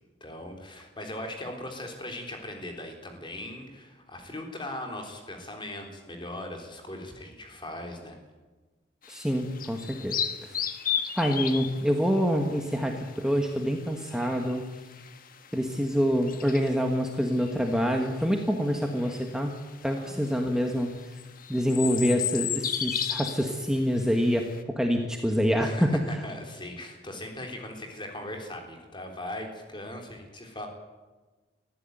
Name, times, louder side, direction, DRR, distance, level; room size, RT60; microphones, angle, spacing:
voice 1, 0.2-8.2 20.0-20.2 25.2-30.7, left 1 dB, 25° left, 3 dB, 3.7 m, -39 dB
sound 1, 9.0-24.6, left 9 dB, 50° left, 1.5 m, -35 dB
voice 2, 9.1-10.6 11.2-14.6 15.5-19.5 19.8-20.9 21.5-26.0, equal, 5° right, 2 dB, 1.4 m, -26 dB
20.5 x 14.5 x 9.2 m, 1.2 s
head